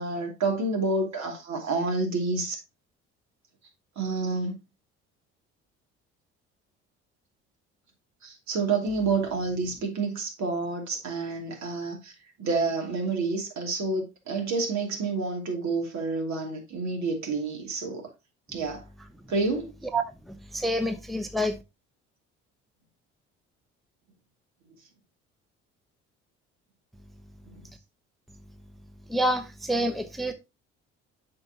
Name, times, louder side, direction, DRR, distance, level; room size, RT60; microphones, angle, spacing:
voice 1, 0.0-2.6 4.0-4.5 8.2-12.1 12.4-18.1 18.5-18.8 19.3-19.7 27.5-27.6, right 3 dB, 60° right, 2.7 m, -29 dB
voice 2, 19.9-21.6 29.1-30.3, right 1 dB, ahead, 0.8 m, -28 dB
7.8 x 5.7 x 2.8 m
hypercardioid pair, 65°, 32 cm